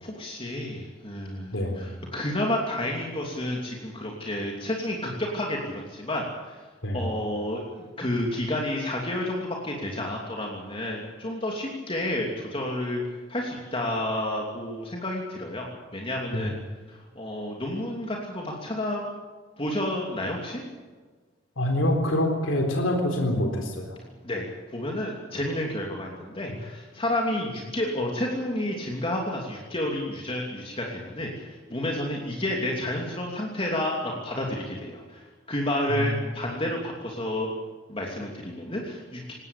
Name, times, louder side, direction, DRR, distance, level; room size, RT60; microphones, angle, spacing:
voice 1, 0.0-6.7 6.9-16.5 16.9-19.1 19.6-20.6 24.2-37.5 37.9-39.3, left 1 dB, 30° left, -1 dB, 2.9 m, -30 dB
voice 2, 1.5-1.8 6.8-7.0 16.3-16.4 21.6-23.9 35.9-36.1, left 1 dB, 80° left, 3 dB, 3.9 m, -25 dB
20.5 x 17.0 x 8.6 m, 1.4 s
head